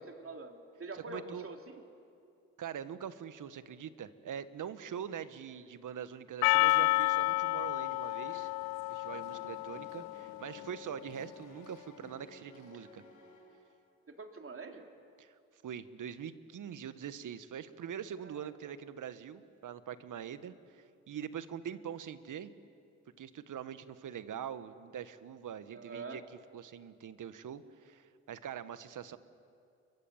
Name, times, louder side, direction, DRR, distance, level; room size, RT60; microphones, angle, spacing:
voice 1, 0.0-1.8 14.1-14.9 18.2-18.7 25.7-26.2, right 3 dB, 35° right, 4 dB, 3.4 m, -45 dB
voice 2, 1.1-1.5 2.6-8.5 8.9-13.0 15.2-15.3 15.6-22.5 23.2-26.2 26.5-29.2, right 8 dB, 55° right, 13 dB, 1.5 m, -43 dB
Percussion, 6.4-10.7, left 21 dB, 75° left, 0.6 m, -30 dB
sound 1, 9.1-14.0, left 3 dB, 55° left, 7.6 m, -56 dB
30.0 x 23.5 x 7.4 m, 2.4 s
hypercardioid pair, 55°, 37 cm